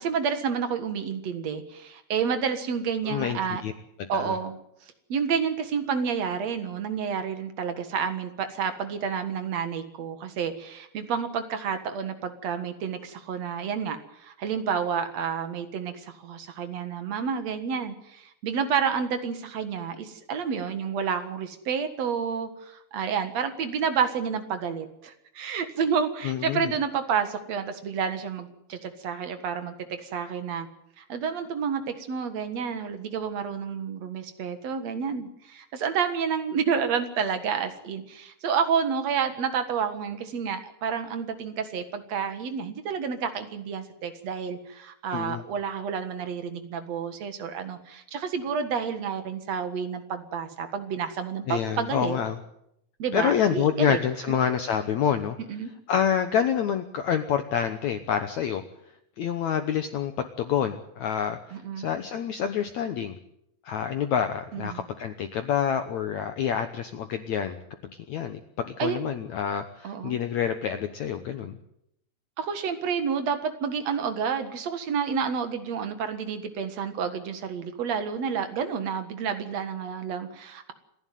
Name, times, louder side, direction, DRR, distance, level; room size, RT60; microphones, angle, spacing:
voice 1, 0.0-3.6 4.1-4.6 5.1-30.7 31.0-52.2 53.0-54.0 54.3-54.4 55.5-55.7 61.5-61.9 64.5-64.8 68.8-69.0 69.8-70.2 72.4-80.7, right 6 dB, 55° right, 9 dB, 2.2 m, -30 dB
voice 2, 3.0-3.7 4.1-4.4 26.2-26.7 45.1-45.4 51.5-52.4 53.1-55.4 55.9-58.6 59.2-61.4 61.8-63.2 63.6-67.6 68.1-71.6, left 8 dB, 80° left, 8 dB, 1.6 m, -27 dB
28.5 x 11.0 x 9.3 m, 0.77 s
omnidirectional pair, 4.7 m